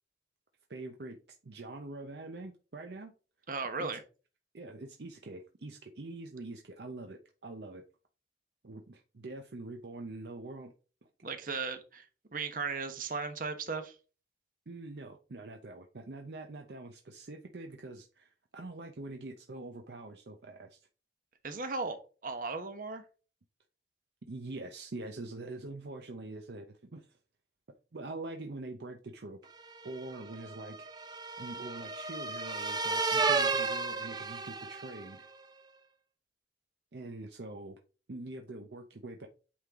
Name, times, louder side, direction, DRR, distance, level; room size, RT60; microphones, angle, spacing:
voice 1, 0.7-1.2 1.4-3.1 3.8-4.0 4.5-7.8 8.6-10.7 14.7-20.9 24.3-27.2 27.9-29.4 29.8-30.9 31.4-35.3 36.9-37.8 38.1-39.3, right 2 dB, 65° right, 4 dB, 0.7 m, -44 dB
voice 2, 3.5-4.0 11.2-13.9 21.4-23.0, right 4 dB, 50° right, 7 dB, 1.0 m, -36 dB
sound 1, 29.7-35.1, right 4 dB, 25° right, 0.6 m, -33 dB
8.6 x 3.8 x 3.6 m, 0.36 s
head